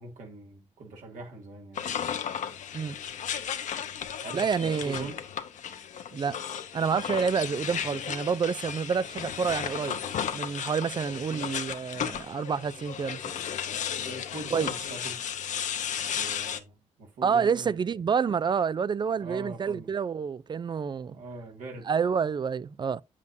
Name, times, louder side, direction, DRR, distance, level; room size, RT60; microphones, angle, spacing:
voice 1, 0.0-1.8 4.2-5.2 11.3-11.5 14.0-15.3 16.1-18.0 19.2-19.9 21.1-21.9, right 3 dB, 80° right, 2.2 m, -42 dB
sound 1, 1.8-16.6, left 8 dB, 75° left, 0.9 m, -34 dB
voice 2, 4.3-5.1 6.1-6.4 6.7-10.0 10.3-13.5 14.5-14.7 17.2-21.1 21.9-23.0, right 6 dB, 35° right, 0.4 m, -28 dB
8.0 x 7.4 x 2.7 m
cardioid pair, 90°, 13 cm